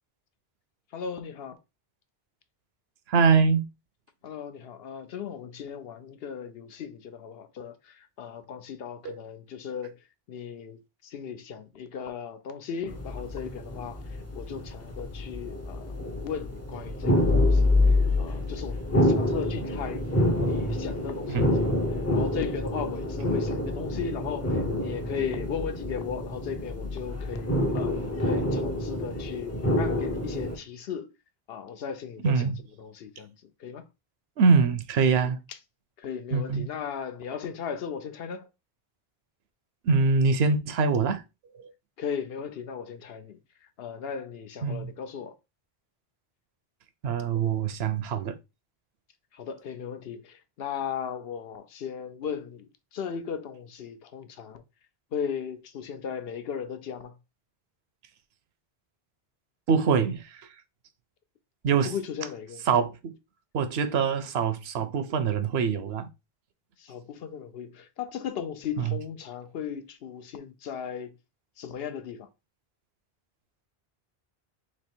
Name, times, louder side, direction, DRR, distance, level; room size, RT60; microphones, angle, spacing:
voice 1, 0.9-1.6 4.2-10.0 10.3-14.0 14.3-16.0 16.2-20.1 20.4-21.7 22.1-31.1 31.5-32.5 32.8-33.3 33.6-33.9 36.0-38.5 42.0-45.3 49.3-54.6 55.1-57.2 61.8-62.7 66.8-71.1 71.6-72.3, left 7 dB, 70° left, 0.8 m, -37 dB
voice 2, 3.1-3.7 9.0-9.2 21.3-21.5 32.2-32.6 34.4-35.4 36.3-36.7 39.8-41.2 41.6-41.7 44.6-44.9 47.0-48.4 59.7-60.5 61.6-61.9 62.7-63.1 63.5-66.1 68.8-69.0, right 5 dB, 80° right, 0.9 m, -24 dB
sound 1, 12.9-30.6, left 1 dB, 20° left, 0.5 m, -27 dB
3.2 x 3.0 x 4.3 m
omnidirectional pair, 1.1 m